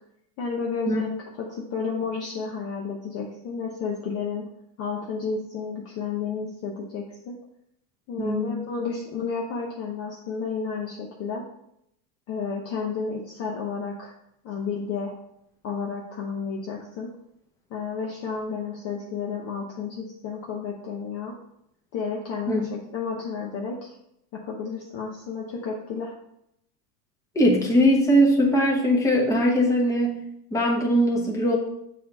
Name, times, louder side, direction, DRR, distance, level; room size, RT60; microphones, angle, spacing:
voice 1, 0.4-4.5 4.8-7.3 8.1-11.4 12.3-14.1 14.4-15.1 15.6-17.1 17.7-21.3 21.9-24.0 24.3-26.1, left 5 dB, 30° left, -1 dB, 0.7 m, -31 dB
voice 2, 8.2-8.6 22.5-22.6 27.3-30.1 30.5-31.6, equal, 5° left, -3 dB, 1.0 m, -20 dB
6.6 x 2.8 x 5.2 m, 0.77 s
supercardioid pair, 135°, 49 cm